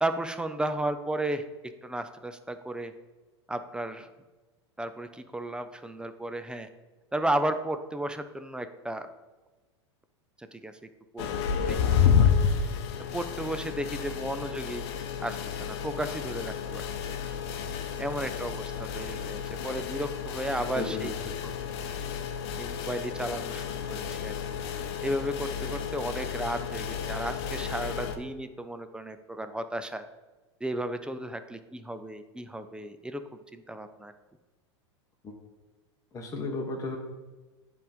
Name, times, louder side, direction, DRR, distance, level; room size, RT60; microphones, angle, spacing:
voice 1, 0.0-1.5 1.8-2.9 3.5-4.1 4.8-6.7 7.1-9.1 10.5-10.7 11.1-11.3 11.7-12.3 12.6-12.8 13.1-14.8 15.2-17.3 18.0-21.1 21.4-21.5 22.6-24.6 25.0-30.0 30.6-33.2 33.5-34.1, right 1 dB, 5° right, 9 dB, 0.5 m, -34 dB
sound 1, 11.2-28.2, left 7 dB, 60° left, 0.9 m, -30 dB
voice 2, 20.7-21.5 35.2-35.3 36.1-37.0, left 3 dB, 20° left, 1 dB, 1.1 m, -35 dB
9.2 x 3.6 x 5.2 m, 1.2 s
hypercardioid pair, 105°, 15 cm